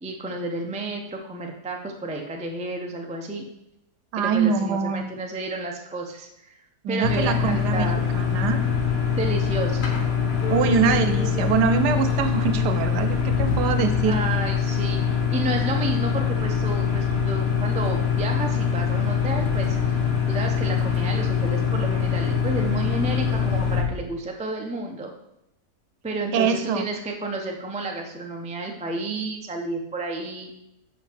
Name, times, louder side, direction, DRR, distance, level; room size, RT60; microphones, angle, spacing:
voice 1, 0.0-3.5 4.1-6.5 6.9-8.1 9.2-9.8 14.0-20.0 20.3-25.1 26.0-30.5, right 2 dB, 10° right, 1 dB, 0.4 m, -31 dB
voice 2, 4.1-5.1 6.8-7.9 8.1-8.6 10.5-14.2 26.3-26.8, right 6 dB, 85° right, 9 dB, 1.2 m, -23 dB
sound 1, 7.0-23.8, left 7 dB, 45° left, 1.2 m, -24 dB
sound 2, 10.4-13.5, left 3 dB, 70° left, 1.8 m, -35 dB
7.3 x 5.5 x 4.5 m, 0.83 s
omnidirectional pair, 1.7 m